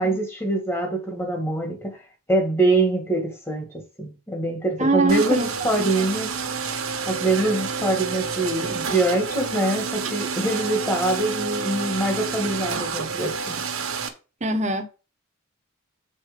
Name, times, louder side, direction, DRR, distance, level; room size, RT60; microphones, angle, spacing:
voice 1, 0.0-2.0 2.3-6.3 7.1-13.6, right 2 dB, 10° left, 1.7 m, -24 dB
voice 2, 4.8-6.1 14.4-14.9, right 2 dB, 35° right, 1.0 m, -24 dB
sound 1, 5.1-14.1, right 5 dB, 85° right, 1.3 m, -29 dB
7.5 x 4.4 x 5.1 m
head